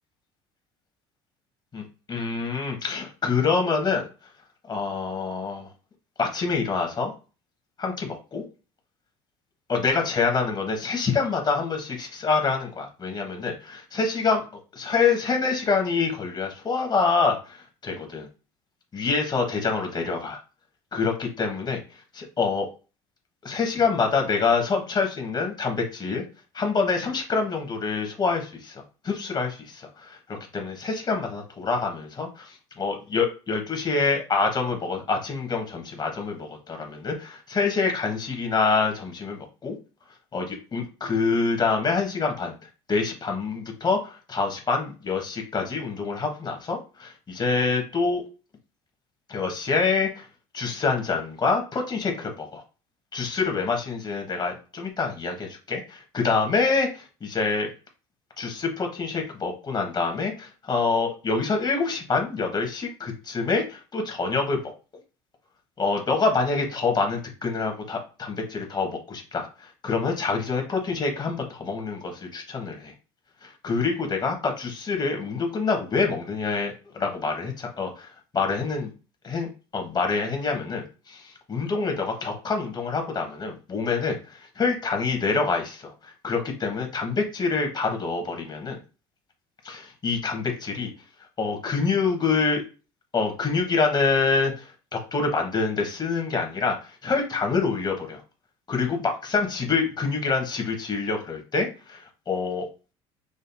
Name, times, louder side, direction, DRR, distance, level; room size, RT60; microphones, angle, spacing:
voice 1, 1.7-4.0 4.7-5.7 6.2-7.1 7.8-8.4 9.7-14.4 14.7-18.3 18.9-20.4 20.9-21.8 22.1-22.7 23.4-26.2 26.5-39.7 40.3-42.5 42.9-48.2 49.3-50.3 50.5-52.6 53.1-57.7 58.4-64.6 65.8-72.9 73.4-78.9 79.2-88.8 89.6-90.9 91.4-92.6 93.1-98.2 98.7-102.7, left 4 dB, 30° left, 3 dB, 1.3 m, -26 dB
5.1 x 2.6 x 2.3 m, 0.34 s
supercardioid pair, 80°, 14 cm